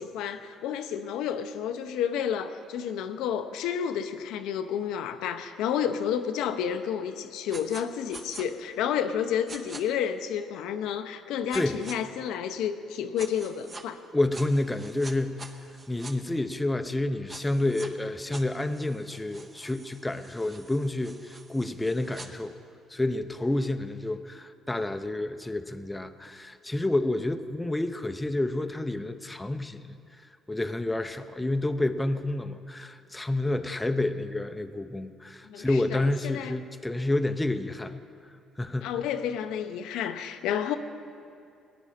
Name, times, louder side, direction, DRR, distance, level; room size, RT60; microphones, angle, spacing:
voice 1, 0.0-14.0 35.4-36.5 38.8-40.8, left 8 dB, 85° left, 8 dB, 0.6 m, -30 dB
sound 1, 7.5-7.8 8.1-8.5 9.5-9.8 11.5-12.0 13.2-13.8 14.3-16.1 17.3-17.9 18.3-22.3, right 3 dB, 30° right, 1.0 m, -45 dB
voice 2, 14.1-15.4 15.9-22.6 22.9-30.0 30.5-38.0 38.6-39.0, left 2 dB, 10° left, 8 dB, 0.6 m, -29 dB
17.5 x 10.0 x 4.3 m, 2.5 s
cardioid pair, 90°, 0 cm